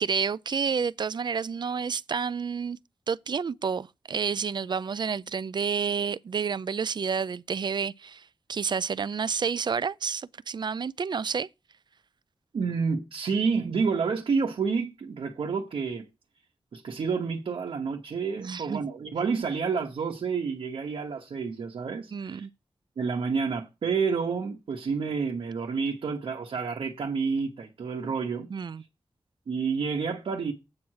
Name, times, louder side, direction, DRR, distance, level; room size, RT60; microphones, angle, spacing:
voice 1, 0.0-2.8 3.1-11.5 18.4-18.8 22.1-22.5 28.5-28.8, right 6 dB, 55° right, 0.4 m, -30 dB
voice 2, 12.5-16.1 16.7-22.5 23.0-28.5 29.5-30.5, right 5 dB, 90° right, 1.1 m, -29 dB
8.5 x 4.7 x 7.4 m
wide cardioid pair, 70°, 9 cm